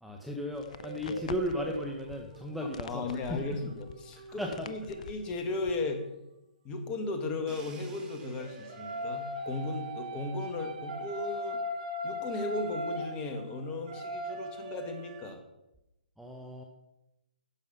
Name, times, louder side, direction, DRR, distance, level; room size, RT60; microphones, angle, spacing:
voice 1, 0.0-3.4 4.4-4.7 16.2-16.6, left 1 dB, ahead, 0 dB, 0.9 m, -35 dB
sound 1, 0.5-5.8, left 7 dB, 55° left, 0.6 m, -47 dB
sound 2, 0.7-5.8 7.8-15.3, equal, 55° right, 2.1 m, -40 dB
voice 2, 2.8-6.0 6.6-11.6 12.0-15.4, left 3 dB, 20° left, 5 dB, 1.9 m, -36 dB
Crash cymbal, 7.5-11.3, right 5 dB, 20° right, 1.9 m, -55 dB
11.5 x 7.3 x 5.6 m, 0.91 s
figure-of-eight pair, 130°, 5 cm